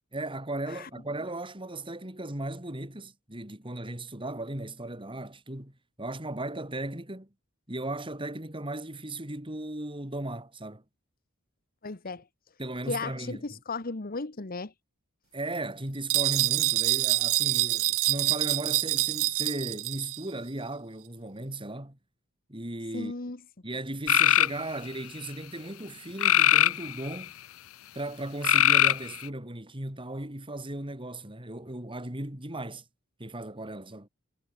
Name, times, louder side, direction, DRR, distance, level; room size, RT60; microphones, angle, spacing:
voice 1, 0.1-5.7 6.0-7.3 7.7-10.8 12.6-13.4 15.3-22.0 22.5-23.1 23.6-27.3 27.9-32.8 33.2-34.1, right 2 dB, 25° right, 3.8 m, -36 dB
voice 2, 11.8-12.2 12.9-14.7 22.9-23.4, left 3 dB, 45° left, 1.2 m, -35 dB
sound 1, 16.1-20.2, right 20 dB, 65° right, 0.3 m, -26 dB
sound 2, 24.1-24.5 26.2-27.2 28.4-29.3, left 12 dB, 75° left, 0.6 m, -21 dB
head